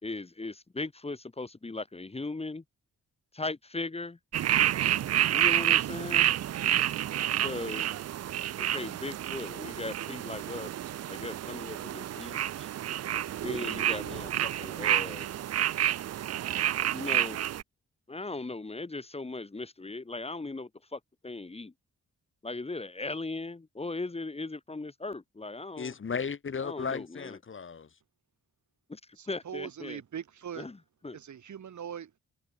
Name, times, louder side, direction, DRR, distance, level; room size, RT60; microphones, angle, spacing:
voice 1, 0.0-2.6 3.3-4.2 5.3-6.3 7.4-7.9 8.6-10.7 11.1-12.7 13.4-15.3 16.9-17.4 18.1-21.7 22.4-25.9 26.6-27.4 28.9-29.0 29.3-30.0 30.6-30.8 31.0-31.2, left 3 dB, 20° left, 1.5 m, -38 dB
sound 1, 4.3-17.6, right 11 dB, 60° right, 0.5 m, -29 dB
voice 2, 25.8-27.9, left 6 dB, 45° left, 1.5 m, -35 dB
voice 3, 29.2-30.7 31.1-32.2, right 8 dB, 75° right, 2.8 m, -41 dB
wide cardioid pair, 110°, 30 cm